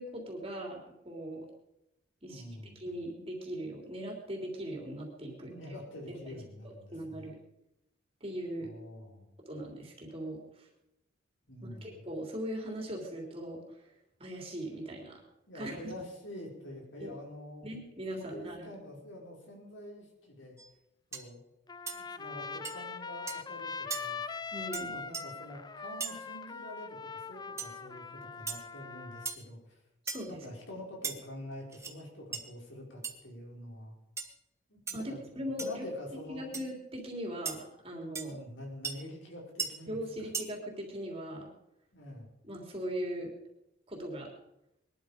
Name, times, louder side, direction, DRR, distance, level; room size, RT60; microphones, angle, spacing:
voice 1, 0.0-1.5 2.2-2.4 2.8-5.5 6.9-7.4 8.2-8.7 9.5-10.7 11.8-13.9 14.2-15.2 15.5-15.8 17.0-17.1 17.6-18.7 24.5-25.0 30.0-30.4 34.9-35.9 36.3-38.4 39.9-41.5 42.4-43.3 43.9-44.3, equal, 30° right, 0 dB, 3.2 m, -39 dB
voice 2, 2.3-2.8 5.4-7.3 8.6-9.4 11.5-12.1 15.5-17.6 18.1-20.6 21.1-21.4 21.9-24.2 24.8-29.8 30.3-33.9 34.7-35.2 35.6-36.6 38.2-40.0 41.9-42.3, left 1 dB, 80° left, -1 dB, 5.5 m, -46 dB
sound 1, 20.6-20.7 21.1-21.3 21.9-22.0 22.6-22.8 23.3-23.4 23.9-24.0 24.7-24.9 25.1-25.2 26.0-26.2 27.6-27.7 28.5-28.6 29.3-29.5 30.1-30.3 31.0-31.2 31.7-31.9 32.3-32.4 33.0-33.1 34.2-34.3 34.9-35.0 35.6-35.8 36.5-36.6 37.5-37.6 38.2-38.3 38.8-38.9 39.6-39.7 40.3-40.5, right 5 dB, 15° right, 1.4 m, -37 dB
Trumpet, 21.7-29.3, left 5 dB, 20° left, 0.5 m, -42 dB
21.5 x 12.0 x 5.2 m, 0.86 s
head